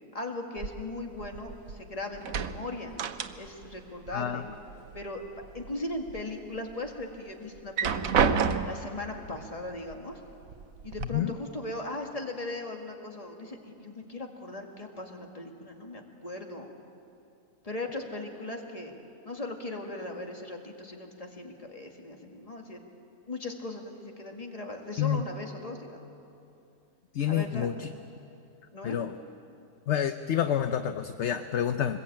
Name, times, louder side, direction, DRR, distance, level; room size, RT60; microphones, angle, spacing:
voice 1, 0.1-3.0 3.4-4.5 4.9-5.3 5.5-8.3 8.6-10.2 10.8-16.7 17.6-18.9 19.2-22.8 23.3-26.1 27.3-27.7 28.7-29.0, left 2 dB, 25° left, 2 dB, 2.1 m, -38 dB
sound 1, 0.6-1.8 2.1-3.7 4.0-5.0 5.4-6.2 6.7-6.8 7.6-9.0 9.9-10.0 10.4-11.0, right 6 dB, 70° right, 1.2 m, -30 dB
voice 2, 4.1-4.4 11.1-11.3 25.0-25.2 27.1-27.9 28.8-29.1 29.9-32.0, left 9 dB, 60° left, 9 dB, 0.9 m, -28 dB
24.0 x 20.5 x 8.7 m, 2.7 s
omnidirectional pair, 1.5 m